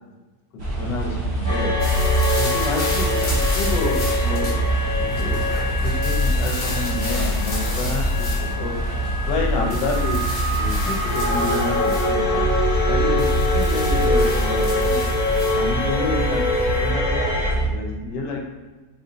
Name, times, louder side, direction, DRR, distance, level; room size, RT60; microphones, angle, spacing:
sound 1, 0.6-17.7, right 1 dB, 45° right, 0.8 m, -24 dB
voice 1, 0.8-1.7 2.3-4.5 5.0-8.3 8.6-8.7 9.2-10.2 10.5-12.4 12.9-15.0 15.5-18.4, left 3 dB, 80° left, 1 dB, 1.4 m, -29 dB
sound 2, 1.4-17.5, left 1 dB, 10° right, 1.3 m, -25 dB
sound 3, 1.8-16.9, left 2 dB, 40° left, 1.2 m, -33 dB
3.9 x 3.9 x 2.8 m, 1.2 s
omnidirectional pair, 1.9 m